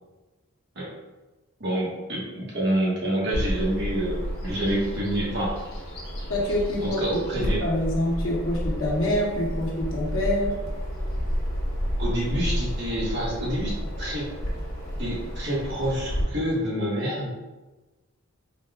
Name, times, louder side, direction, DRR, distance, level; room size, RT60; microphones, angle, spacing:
voice 1, 1.6-5.6 6.8-7.6 12.0-14.3 15.0-17.3, right 1 dB, 55° right, -5 dB, 1.1 m, -27 dB
Bird vocalization bird call bird song, 3.3-16.2, equal, 45° left, 1.2 m, -31 dB
voice 2, 6.3-7.0 7.4-10.6, left 1 dB, 80° left, -3 dB, 0.9 m, -26 dB
3.9 x 2.3 x 3.4 m, 1.1 s
head